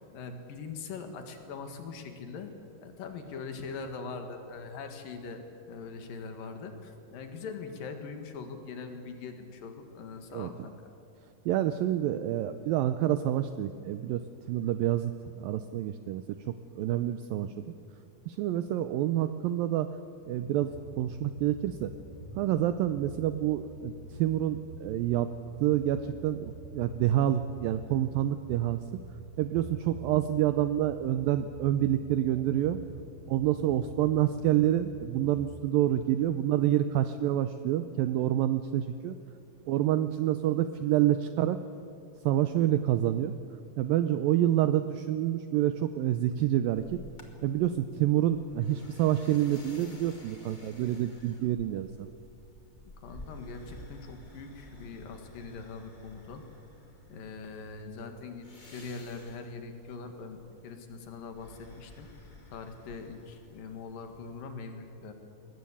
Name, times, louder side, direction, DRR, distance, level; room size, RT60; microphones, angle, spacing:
voice 1, 0.0-2.5 2.8-5.4 5.7-10.8 53.0-56.4 57.1-58.5 58.7-62.1 62.5-65.1, left 4 dB, 65° left, 6 dB, 3.3 m, -42 dB
voice 2, 11.5-14.2 14.5-15.1 15.4-17.5 18.3-19.9 20.3-21.9 22.4-23.9 24.2-25.3 25.6-28.8 29.4-32.8 33.3-39.2 39.7-41.6 42.3-43.3 43.8-47.0 47.4-52.1, right 12 dB, 80° right, 10 dB, 2.1 m, -27 dB
sound 1, 20.4-36.0, right 2 dB, 50° right, 6.6 m, -47 dB
sound 2, 46.7-64.4, left 1 dB, 25° left, 0.9 m, -52 dB
21.5 x 19.5 x 8.5 m, 2.6 s
omnidirectional pair, 4.7 m